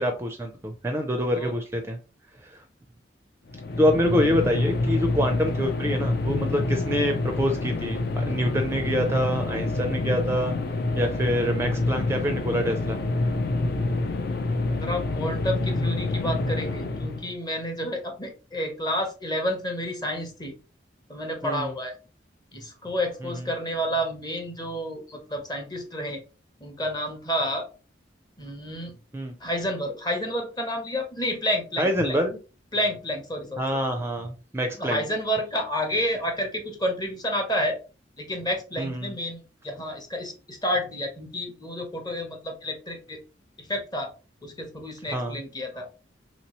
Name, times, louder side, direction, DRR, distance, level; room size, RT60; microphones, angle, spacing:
voice 1, 0.0-2.0 2.4-2.6 3.8-10.5 10.9-13.0 21.4-21.7 23.2-23.5 29.1-29.3 31.8-32.4 33.6-35.0 38.8-39.2 45.1-45.4, equal, 15° right, 4 dB, 0.4 m, -26 dB
sound 1, 3.5-17.3, left 2 dB, 60° left, 0.4 m, -27 dB
voice 2, 14.7-20.5 21.1-21.9 22.5-26.2 26.6-27.7 28.4-29.0 29.4-32.2 32.7-33.6 34.8-37.8 38.2-43.2 43.6-44.1 44.4-45.9, equal, 25° left, 4 dB, 0.8 m, -30 dB
3.0 x 3.0 x 2.9 m, 0.33 s
head